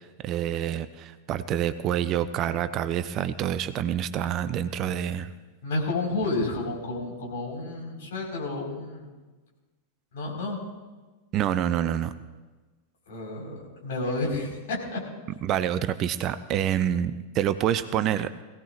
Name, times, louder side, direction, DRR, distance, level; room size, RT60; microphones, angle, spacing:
voice 1, 0.2-5.3 11.3-12.1 15.4-18.3, right 10 dB, 35° right, 13 dB, 0.5 m, -27 dB
voice 2, 5.6-9.1 10.1-10.6 13.1-15.0, left 2 dB, 55° left, -1 dB, 4.6 m, -31 dB
21.0 x 17.0 x 2.5 m, 1.3 s
figure-of-eight pair, 90°, 0 cm